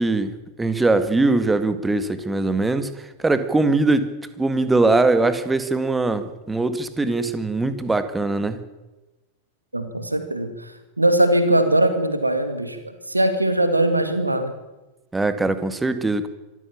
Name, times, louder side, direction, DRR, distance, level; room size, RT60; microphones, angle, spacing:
voice 1, 0.0-4.1 4.4-8.6 15.1-16.3, right 2 dB, 10° right, 11 dB, 2.0 m, -21 dB
voice 2, 9.7-10.5 11.0-14.5, right 1 dB, 85° right, 10 dB, 2.1 m, -20 dB
25.0 x 14.5 x 8.7 m, 1.1 s
figure-of-eight pair, 90°, 0 cm